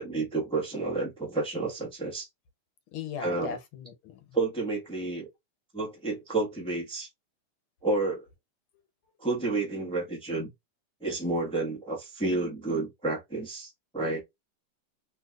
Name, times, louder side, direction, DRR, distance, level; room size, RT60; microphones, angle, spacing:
voice 1, 0.0-2.3 3.2-3.6 4.3-5.3 5.7-7.1 7.8-8.2 9.2-10.5 11.0-14.2, right 3 dB, 5° left, 0.5 m, -30 dB
voice 2, 2.9-4.2, left 7 dB, 75° left, 1.6 m, -38 dB
3.3 x 3.1 x 2.3 m
omnidirectional pair, 2.4 m